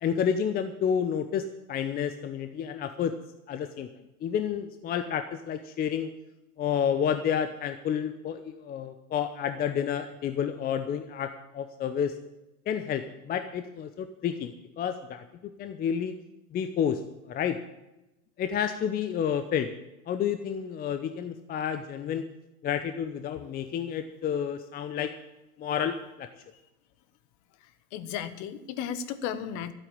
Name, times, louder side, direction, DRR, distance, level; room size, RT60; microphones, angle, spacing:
voice 1, 0.0-3.2 3.5-3.9 4.2-6.1 6.6-12.2 12.7-16.1 16.5-17.6 18.4-19.7 20.1-22.2 22.6-25.1 25.6-26.3, left 8 dB, 20° left, 9 dB, 0.7 m, -30 dB
voice 2, 27.9-29.7, left 8 dB, 40° left, 13 dB, 1.4 m, -34 dB
12.5 x 9.0 x 8.7 m, 0.94 s
hypercardioid pair, 115°, 45 cm